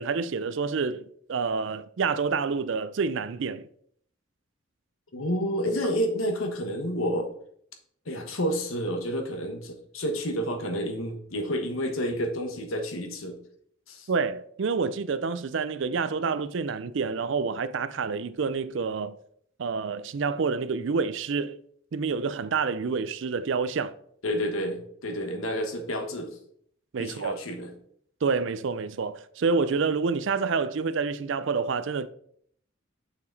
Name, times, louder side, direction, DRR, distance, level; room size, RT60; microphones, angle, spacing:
voice 1, 0.0-3.7 14.1-19.2 19.6-21.6 21.9-23.9 26.9-27.4 28.2-32.1, right 5 dB, 60° right, 0.4 m, -28 dB
voice 2, 5.1-7.3 8.0-13.4 13.9-14.1 24.2-26.3 27.0-27.7, equal, 80° left, 1.3 m, -30 dB
6.8 x 5.8 x 3.9 m
head